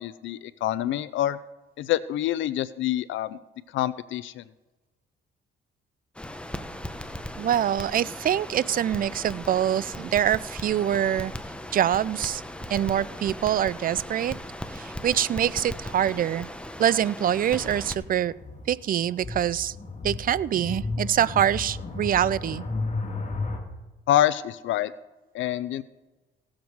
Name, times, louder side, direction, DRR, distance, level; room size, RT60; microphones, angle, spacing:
voice 1, 0.0-1.4 1.8-3.4 3.7-4.4 24.1-24.9 25.3-25.8, left 12 dB, 75° left, 17 dB, 0.4 m, -26 dB
Crackle, 6.1-17.9, left 1 dB, 5° left, 0.9 m, -38 dB
voice 2, 7.4-11.3 11.7-12.4 12.7-14.4 14.7-16.5 16.8-18.3 18.7-19.7 20.0-22.6, right 10 dB, 45° right, 20 dB, 0.4 m, -25 dB
sound 1, 17.4-23.6, left 3 dB, 35° left, 2.2 m, -34 dB
17.5 x 7.3 x 4.6 m, 1.2 s
cardioid pair, 90°, 20 cm